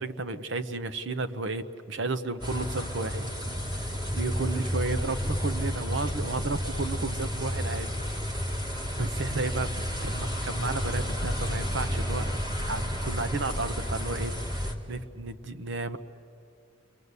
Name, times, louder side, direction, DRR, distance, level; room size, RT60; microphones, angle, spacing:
voice 1, 0.0-3.3 3.6-7.9 8.3-8.5 9.0-9.7 10.0-12.3 12.7-16.0, right 3 dB, 65° right, 11 dB, 1.0 m, -33 dB
sound 1, 2.4-14.7, equal, 20° right, 2.2 m, -31 dB
30.0 x 23.5 x 8.2 m, 2.4 s
head